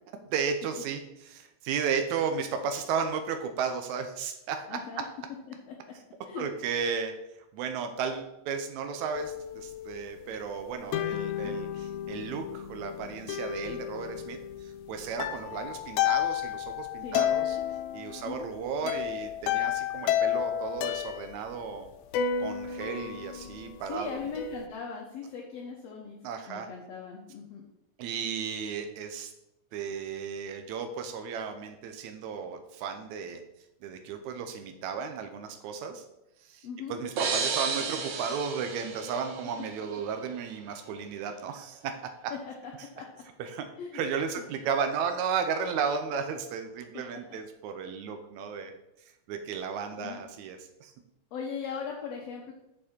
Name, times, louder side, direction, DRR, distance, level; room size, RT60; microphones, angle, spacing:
voice 1, 0.3-4.7 6.4-7.1 7.5-17.6 17.9-21.9 22.4-24.2 26.2-26.7 28.0-29.3 29.7-33.4 33.8-36.0 36.4-41.9 42.8-42.9 43.4-43.7 43.9-48.7 49.3-50.9, right 6 dB, 90° right, 6 dB, 2.1 m, -34 dB
voice 2, 4.7-5.1 5.5-5.9 6.3-6.5 17.0-17.2 18.2-18.6 18.8-18.9 23.9-26.2 26.5-27.7 36.6-37.0 42.3-43.2 43.8-44.0 44.4-44.5 46.9-47.0 47.3-47.4 49.9-50.2 51.3-52.5, left 6 dB, 70° left, -1 dB, 1.9 m, -39 dB
sound 1, 9.1-10.5 10.9-21.3 22.1-24.7, left 10 dB, 85° left, 1.9 m, -32 dB
sound 2, 37.2-39.9, right 5 dB, 70° right, 1.1 m, -33 dB
7.4 x 6.7 x 4.3 m, 0.88 s
omnidirectional pair, 3.3 m